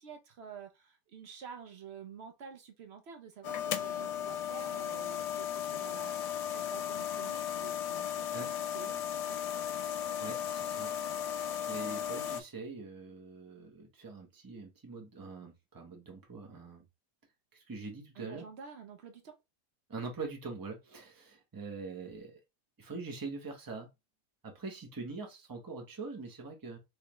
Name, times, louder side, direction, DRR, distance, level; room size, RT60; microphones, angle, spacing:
voice 1, 0.0-9.4 18.1-19.4, right 6 dB, 65° right, 0.6 m, -50 dB
sound 1, 3.4-12.4, left 9 dB, 85° left, 1.2 m, -36 dB
voice 2, 10.2-10.9 11.7-16.8 17.5-18.5 19.9-22.4 22.8-23.9 24.4-26.8, right 4 dB, 20° right, 0.6 m, -43 dB
3.4 x 3.2 x 3.0 m
omnidirectional pair, 1.8 m